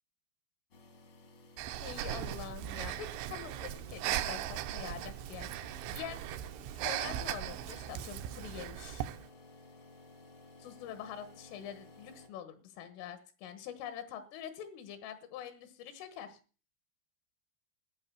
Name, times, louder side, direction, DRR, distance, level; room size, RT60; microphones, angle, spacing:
sound 1, 0.7-12.3, left 3 dB, 60° left, 1.3 m, -57 dB
Breathing, 1.6-9.2, right 12 dB, 80° right, 2.9 m, -38 dB
voice 1, 1.8-6.2 6.8-9.1 10.6-16.4, left 9 dB, 80° left, 10 dB, 3.8 m, -45 dB
14.5 x 8.6 x 6.9 m, 0.38 s
omnidirectional pair, 5.6 m